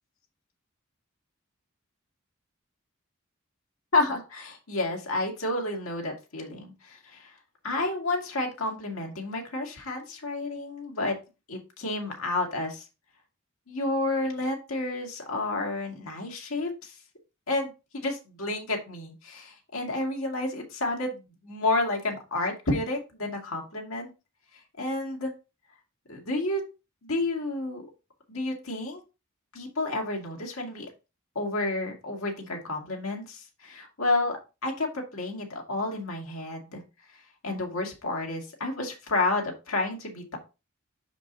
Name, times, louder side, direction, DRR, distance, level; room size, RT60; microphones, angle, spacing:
voice 1, 3.9-7.3 7.6-11.1 11.5-12.8 13.7-16.9 17.5-17.7 18.0-24.1 24.8-25.3 26.1-26.6 27.0-27.9 28.3-29.0 29.5-30.9 31.4-34.9 35.1-36.8 37.4-40.4, left 2 dB, 75° left, 1 dB, 2.1 m, -30 dB
5.7 x 5.1 x 3.9 m, 0.28 s
head